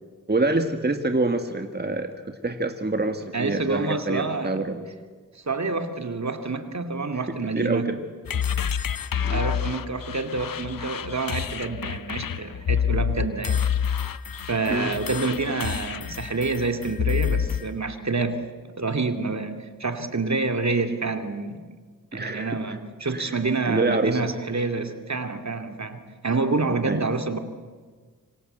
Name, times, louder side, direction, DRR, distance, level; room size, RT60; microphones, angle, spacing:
voice 1, 0.3-4.9 7.5-8.0 9.2-9.4 14.7-14.9 22.1-22.6 23.1-23.4 23.7-24.2 26.9-27.0, right 2 dB, 30° right, 6 dB, 2.0 m, -26 dB
voice 2, 3.3-4.6 5.3-7.8 9.3-13.6 14.5-21.6 22.1-27.4, right 3 dB, 55° right, 7 dB, 2.5 m, -28 dB
sound 1, 8.3-17.7, left 8 dB, 75° left, 0.9 m, -28 dB
27.0 x 25.0 x 8.1 m, 1.5 s
cardioid pair, 45°, 34 cm